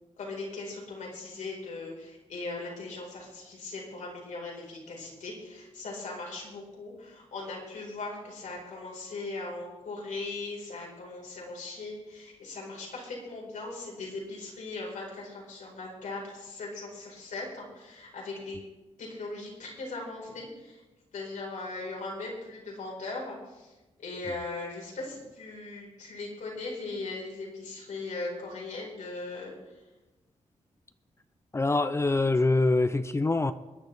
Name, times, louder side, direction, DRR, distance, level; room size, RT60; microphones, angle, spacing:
voice 1, 0.2-18.6 19.0-20.8 21.1-29.8, left 3 dB, 85° left, -2 dB, 4.7 m, -39 dB
voice 2, 31.5-33.5, left 2 dB, 20° left, 11 dB, 0.5 m, -24 dB
23.0 x 10.5 x 3.5 m, 1.1 s
wide cardioid pair, 130°, 13 cm